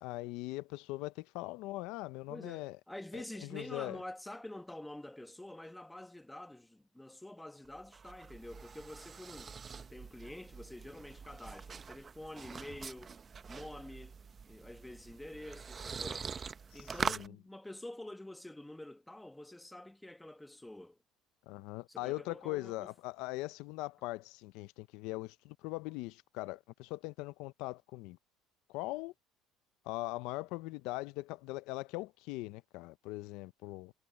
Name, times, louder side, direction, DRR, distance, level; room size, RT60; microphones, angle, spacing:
voice 1, 0.0-2.8 3.1-4.0 16.7-17.3 21.5-28.2 28.7-29.1 29.8-33.9, left 20 dB, 75° left, 0.5 m, -41 dB
voice 2, 2.3-13.1 13.5-14.2 14.5-16.3 16.7-21.0 21.9-22.9, left 1 dB, 5° left, 1.1 m, -48 dB
sound 1, 7.6-17.3, right 6 dB, 25° right, 0.7 m, -44 dB
cardioid pair, 150°, 0 cm